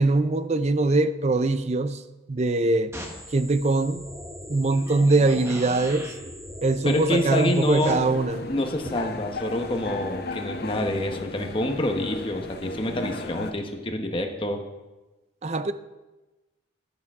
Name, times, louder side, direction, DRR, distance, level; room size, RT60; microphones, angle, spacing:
voice 1, 0.0-2.0 2.3-2.9 3.3-4.0 4.5-6.1 6.6-8.4 15.4-15.7, right 2 dB, 30° right, 12 dB, 0.4 m, -22 dB
sound 1, 2.9-7.9, equal, 15° right, 1.2 m, -40 dB
voice 2, 6.8-8.0 8.5-14.6, left 1 dB, 25° left, 4 dB, 1.0 m, -27 dB
sound 2, 7.9-13.5, left 2 dB, 50° left, 0.6 m, -35 dB
11.5 x 10.0 x 3.6 m, 1.1 s
head